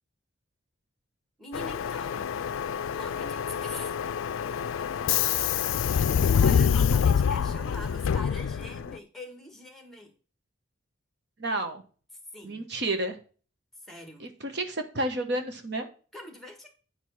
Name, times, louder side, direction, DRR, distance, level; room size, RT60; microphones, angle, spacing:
voice 1, 1.4-2.3 2.9-4.0 6.4-10.1 12.3-12.6 13.8-14.3 16.1-16.7, left 1 dB, ahead, 4 dB, 1.6 m, -43 dB
Subway metro underground, 1.5-9.0, left 7 dB, 80° left, 0.3 m, -26 dB
voice 2, 11.4-11.8 12.4-13.2 14.2-15.9, right 1 dB, 55° right, 6 dB, 1.1 m, -31 dB
9.8 x 4.8 x 5.6 m, 0.38 s
head